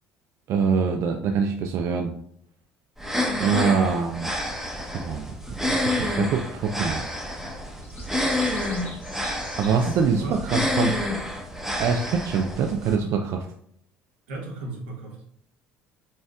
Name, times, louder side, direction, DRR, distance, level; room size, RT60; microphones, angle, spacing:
voice 1, 0.5-2.1 3.4-4.3 4.9-5.3 5.7-7.1 9.6-11.0 11.8-13.5, right 5 dB, 60° right, 4 dB, 0.4 m, -24 dB
sound 1, 3.0-13.0, left 1 dB, 5° right, 0.9 m, -28 dB
sound 2, 7.8-10.6, left 2 dB, 35° left, 1.4 m, -45 dB
voice 2, 10.2-10.6 14.3-15.3, right 2 dB, 85° right, -1 dB, 1.0 m, -35 dB
4.3 x 3.4 x 2.3 m, 0.67 s
hypercardioid pair, 70°, 6 cm